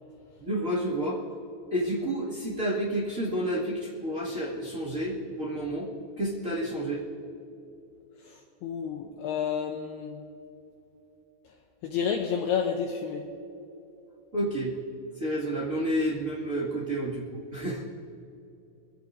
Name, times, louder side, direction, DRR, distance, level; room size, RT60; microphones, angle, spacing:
voice 1, 0.4-1.2 1.7-5.9 6.2-7.0 14.3-14.7 15.2-17.8, right 1 dB, 60° right, -7 dB, 0.8 m, -30 dB
voice 2, 8.6-10.2 11.8-13.3, left 7 dB, 80° left, 2 dB, 2.3 m, -30 dB
24.0 x 16.0 x 2.6 m, 2.8 s
omnidirectional pair, 5.6 m